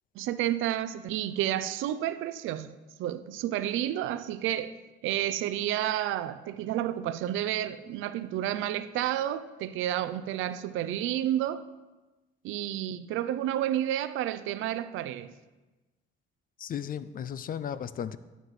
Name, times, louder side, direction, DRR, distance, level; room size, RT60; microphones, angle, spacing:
voice 1, 0.2-4.8 5.0-11.6 12.4-15.3, right 12 dB, 90° right, 0.4 m, -30 dB
voice 2, 16.6-18.2, left 8 dB, 45° left, 0.4 m, -35 dB
10.5 x 6.5 x 3.2 m
cardioid pair, 90°, 20 cm